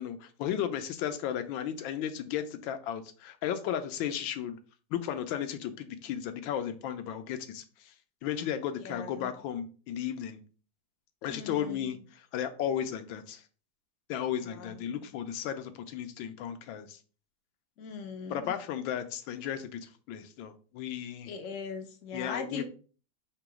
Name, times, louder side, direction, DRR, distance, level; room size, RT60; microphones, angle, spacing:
voice 1, 0.0-4.6 4.9-7.9 8.2-10.4 11.2-12.0 12.3-13.4 14.1-17.0 18.3-21.3 22.1-22.6, left 9 dB, 85° left, 1.4 m, -34 dB
voice 2, 8.8-9.3 11.3-12.0 14.4-15.0 17.8-18.5 21.3-22.6, left 5 dB, 65° left, 0.7 m, -40 dB
3.7 x 2.9 x 4.7 m
omnidirectional pair, 2.1 m